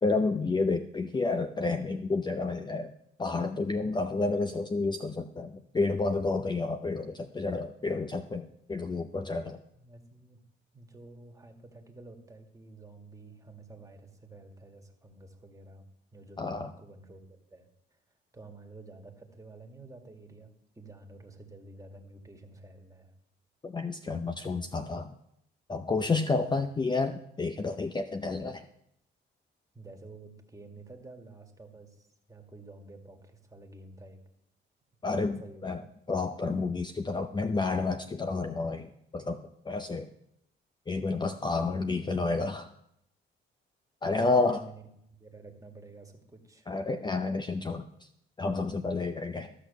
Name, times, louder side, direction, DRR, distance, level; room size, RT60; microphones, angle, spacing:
voice 1, 0.0-2.9 3.2-9.6 16.4-16.7 23.6-25.2 25.7-28.7 35.0-35.8 36.1-40.1 40.9-42.7 44.0-44.6 46.7-48.1 48.4-49.5, left 3 dB, 20° left, 8 dB, 0.6 m, -30 dB
voice 2, 9.7-10.4 10.7-15.8 16.1-17.7 18.3-23.1 26.4-26.5 29.7-34.2 35.1-35.9 41.8-41.9 44.0-46.7, right 2 dB, 15° right, 3 dB, 2.0 m, -50 dB
14.0 x 6.3 x 6.8 m, 0.77 s
cardioid pair, 90°, 20 cm